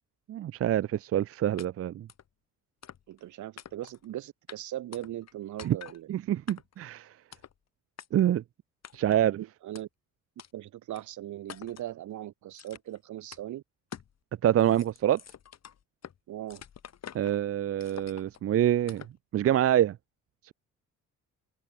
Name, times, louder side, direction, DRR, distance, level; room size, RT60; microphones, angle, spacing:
voice 1, 0.3-2.1 5.6-5.8 6.1-7.1 8.1-8.4 8.9-9.4 14.4-15.2 17.1-19.0 19.3-20.0, right 11 dB, 50° right, 0.6 m, -26 dB
sound 1, 1.6-1.7 2.1-2.3 2.8-3.2 3.6-4.0 4.5-4.6 4.9-5.3 5.6-6.0 6.5-6.8 7.3-7.6 8.0-8.1 8.8-9.2 9.7-9.8 10.4-10.5 10.9-11.0 11.5-11.9 12.5-13.0 13.3-13.4 13.9-14.2 14.5-16.2 16.5-17.4 17.8-18.4 18.9-19.2, left 9 dB, 60° left, 7.3 m, -47 dB
voice 2, 3.1-6.1 9.2-9.9 10.5-13.6 16.3-16.6, right 13 dB, 75° right, 2.4 m, -39 dB
cardioid pair, 90°, 30 cm